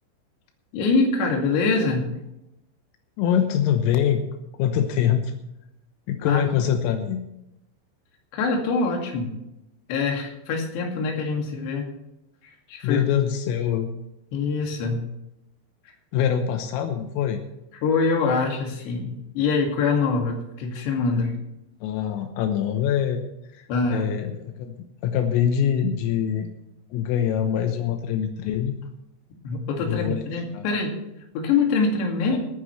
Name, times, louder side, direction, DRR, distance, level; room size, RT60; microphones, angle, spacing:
voice 1, 0.7-2.1 6.3-6.6 8.3-9.3 9.9-11.9 12.4-13.0 14.3-15.0 17.8-21.3 23.7-24.1 29.4-30.9 31.3-32.4, left 4 dB, 60° left, 1 dB, 4.2 m, -24 dB
voice 2, 3.2-4.2 4.6-5.3 6.1-7.2 12.8-13.9 16.1-17.4 21.8-23.2 23.5-24.7 25.0-26.5 26.9-28.8 29.8-30.3 30.5-30.7 32.3-32.4, left 9 dB, 85° left, 5 dB, 3.7 m, -24 dB
27.0 x 9.5 x 3.3 m, 0.88 s
omnidirectional pair, 5.8 m